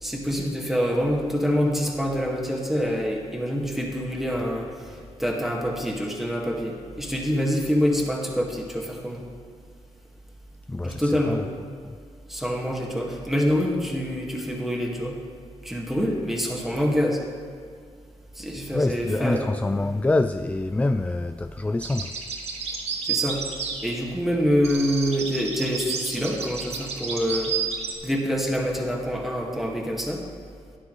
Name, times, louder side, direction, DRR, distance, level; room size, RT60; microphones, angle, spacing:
voice 1, 0.0-9.2 10.8-11.4 12.3-15.2 15.6-17.2 18.4-19.4 23.0-23.4 23.8-27.5 28.0-30.2, equal, 5° right, 2.0 m, -26 dB
voice 2, 10.7-11.5 11.8-12.0 18.7-22.2, left 2 dB, 10° left, 0.3 m, -26 dB
sound 1, 21.8-24.3 24.6-27.9, right 6 dB, 70° right, 1.6 m, -31 dB
11.5 x 9.6 x 3.3 m
cardioid pair, 65°, 11 cm